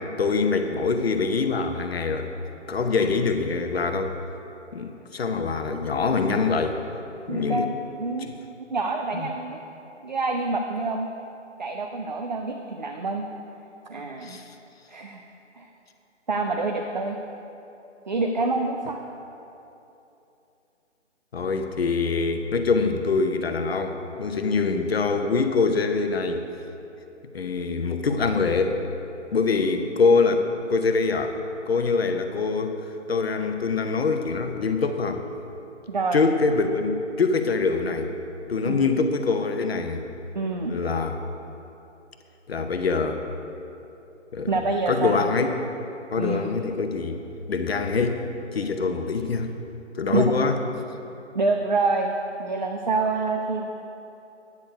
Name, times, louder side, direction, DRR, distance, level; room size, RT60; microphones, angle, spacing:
voice 1, 0.0-2.3 2.7-4.1 4.7-6.8 7.3-7.7 8.3-8.4 9.1-9.3 14.2-14.4 21.3-26.5 27.3-28.8 29.3-31.4 31.7-35.2 36.1-38.1 38.5-40.0 40.7-41.2 42.5-43.2 44.3-44.6 44.9-45.5 46.1-47.2 47.5-48.2 48.5-49.5 50.0-50.5, left 4 dB, 55° left, 7 dB, 0.8 m, -24 dB
voice 2, 7.3-8.3 8.7-9.6 10.0-11.1 11.6-13.3 13.9-14.4 14.9-15.2 15.5-15.7 16.3-17.2 18.1-19.0 35.9-36.2 38.6-38.9 40.3-40.8 44.5-45.3 46.2-46.5 50.1-50.2 51.3-52.1 52.4-53.6, right 3 dB, 40° right, 3 dB, 0.4 m, -27 dB
9.5 x 6.8 x 5.1 m, 2.9 s
figure-of-eight pair, 155°, 37 cm